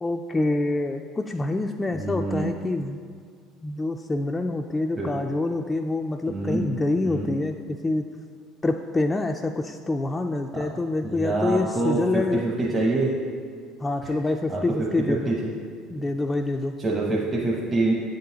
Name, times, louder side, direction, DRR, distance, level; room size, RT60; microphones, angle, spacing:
voice 1, 0.0-3.0 3.6-8.1 8.6-12.4 13.8-15.4 15.9-16.7, left 2 dB, 20° left, 3 dB, 0.3 m, -26 dB
voice 2, 1.9-2.5 5.0-5.1 6.3-6.6 7.0-7.3 10.5-10.7 11.0-13.1 14.0-14.1 14.5-14.6 15.1-15.3 16.8-17.9, right 2 dB, 30° right, -4 dB, 0.9 m, -25 dB
8.8 x 3.8 x 2.8 m, 2.1 s
hypercardioid pair, 80°, 0 cm